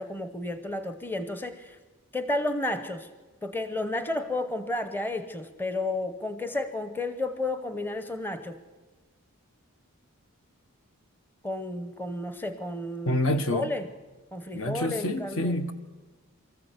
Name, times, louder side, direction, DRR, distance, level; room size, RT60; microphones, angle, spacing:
voice 1, 0.0-1.8 2.1-3.1 3.4-8.6 11.4-13.9 14.3-15.5, left 2 dB, 10° left, 0.8 m, -32 dB
voice 2, 13.0-13.7 14.5-15.7, left 1 dB, 65° left, 1.4 m, -27 dB
25.0 x 14.0 x 8.1 m
head